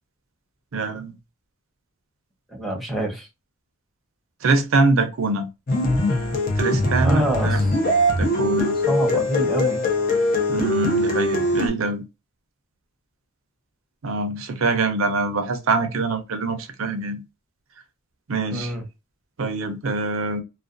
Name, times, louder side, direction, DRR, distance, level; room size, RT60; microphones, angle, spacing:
voice 1, 0.7-1.1 4.4-5.5 6.6-7.6 8.2-8.7 10.5-12.0 14.0-17.2 18.3-18.7 19.4-20.4, right 3 dB, 80° right, 0.6 m, -24 dB
voice 2, 2.5-3.3 7.0-7.8 8.9-9.8 18.5-18.8, right 1 dB, ahead, 0.8 m, -26 dB
sound 1, 5.7-11.7, left 1 dB, 45° left, 0.6 m, -21 dB
2.4 x 2.2 x 2.4 m
head